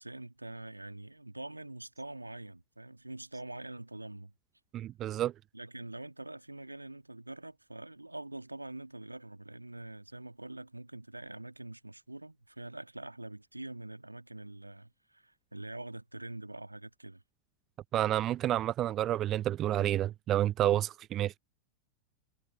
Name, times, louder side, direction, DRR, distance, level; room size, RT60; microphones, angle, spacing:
voice 1, 0.0-4.3 5.5-17.2, right 2 dB, 85° right, 1.6 m, -45 dB
voice 2, 4.7-5.3 17.9-21.4, right 12 dB, 30° right, 0.4 m, -29 dB
figure-of-eight pair, 90°, 0 cm